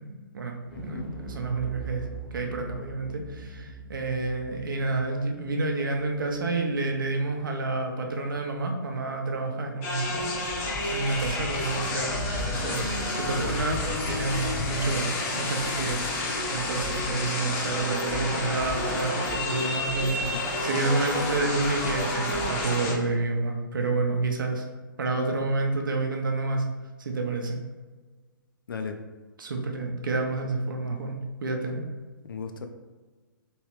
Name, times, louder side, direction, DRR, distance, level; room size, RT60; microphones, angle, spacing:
voice 1, 0.0-2.1 2.3-10.2 10.9-13.8 14.1-24.7 25.0-26.6 27.0-27.6 29.4-31.8, right 3 dB, 65° right, 3 dB, 0.7 m, -29 dB
voice 2, 0.7-1.1 13.4-13.6 20.0-20.4 28.7-29.0 32.2-32.7, left 5 dB, 70° left, 5 dB, 0.4 m, -37 dB
sound 1, 0.7-7.1, right 4 dB, 20° right, 0.7 m, -42 dB
sound 2, 9.8-22.9, left 2 dB, 20° left, 0.6 m, -30 dB
3.1 x 3.0 x 3.1 m, 1.3 s
figure-of-eight pair, 125°, 12 cm